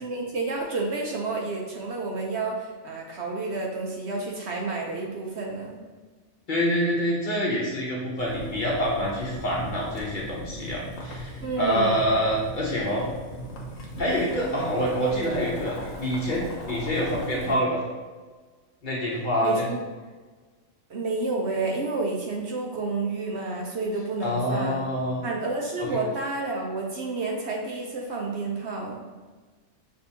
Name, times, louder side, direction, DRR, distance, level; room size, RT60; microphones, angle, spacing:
voice 1, 0.0-5.8 11.4-12.0 19.4-19.8 20.9-24.9 25.2-29.0, right 3 dB, 60° right, -1 dB, 0.9 m, -30 dB
voice 2, 6.5-13.1 14.0-17.8 18.8-19.7 24.2-25.2 25.8-25.9, equal, 45° left, -4 dB, 0.8 m, -26 dB
Boiling, 8.2-17.5, equal, 80° left, 1.3 m, -39 dB
6.5 x 2.7 x 2.7 m, 1.4 s
omnidirectional pair, 1.4 m